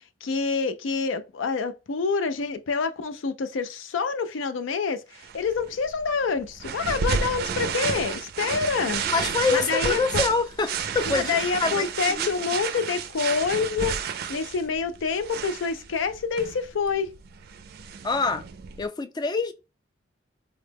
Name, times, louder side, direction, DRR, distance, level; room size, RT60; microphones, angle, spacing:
voice 1, 0.2-9.0 9.5-10.2 11.1-14.0 14.3-17.1, left 5 dB, 85° left, 0.4 m, -27 dB
sound 1, 5.2-18.9, right 6 dB, 55° right, 0.4 m, -31 dB
voice 2, 9.1-12.3 18.0-18.4 18.8-19.5, left 4 dB, 20° left, 0.3 m, -26 dB
3.8 x 2.1 x 3.3 m
head